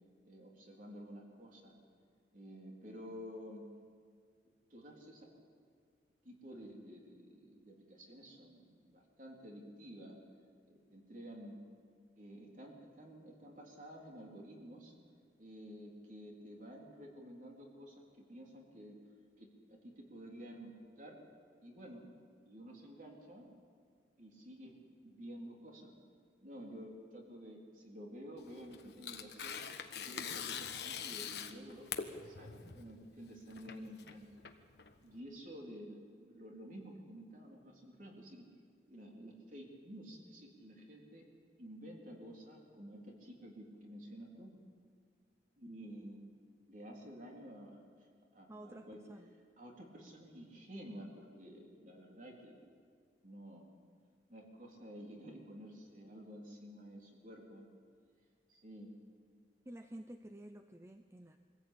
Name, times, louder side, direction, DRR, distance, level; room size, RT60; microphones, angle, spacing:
voice 1, 0.3-1.8 2.3-3.7 4.7-5.3 6.2-10.2 10.7-11.6 12.2-14.9 15.4-19.0 19.4-21.2 21.6-22.1 22.5-23.5 24.2-25.9 26.4-29.7 30.0-34.3 35.0-38.4 38.9-41.3 41.6-44.6 45.6-46.2 46.7-48.1 48.3-49.0 49.6-52.7 53.2-53.7 54.3-57.7 58.5-59.0, equal, 45° right, -1 dB, 3.8 m, -51 dB
Tearing, 28.4-35.2, left 7 dB, 65° left, 1.3 m, -44 dB
voice 2, 48.5-49.3 59.7-61.4, right 1 dB, 15° right, 6 dB, 0.6 m, -51 dB
24.0 x 15.0 x 8.6 m, 2.1 s
head